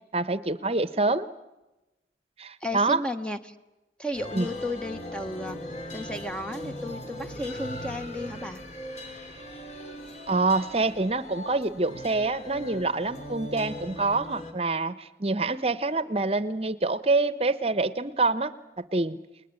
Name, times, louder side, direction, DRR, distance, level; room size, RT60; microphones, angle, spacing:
voice 1, 0.1-1.3 2.4-3.0 4.3-4.5 10.3-19.2, right 3 dB, 35° right, 16 dB, 0.9 m, -26 dB
voice 2, 2.6-3.5 4.0-5.6 5.9-8.6, left 1 dB, 5° left, 8 dB, 1.0 m, -34 dB
sound 1, 4.1-14.5, left 1 dB, 40° left, 3.6 m, -39 dB
29.5 x 21.0 x 9.7 m, 1.0 s
head